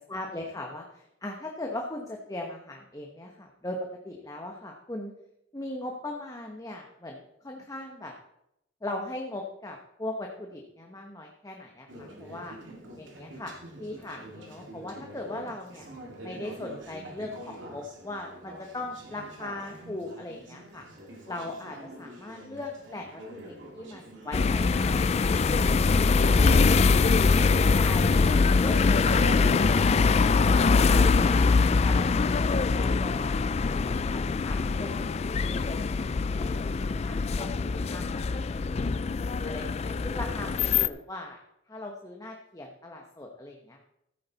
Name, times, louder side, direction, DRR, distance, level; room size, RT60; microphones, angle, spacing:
voice 1, 0.1-3.8 4.0-5.1 5.5-8.1 8.8-12.6 13.0-15.9 16.2-20.8 21.3-25.4 25.8-26.9 27.3-31.4 31.8-38.9 39.4-41.4 41.7-43.8, left 2 dB, 15° left, 1 dB, 1.0 m, -40 dB
Conversation / Chatter, 11.9-31.5, right 1 dB, 70° right, 2.4 m, -43 dB
sound 1, 24.3-40.9, left 4 dB, 35° left, 0.3 m, -23 dB
14.5 x 8.7 x 4.0 m, 0.83 s
head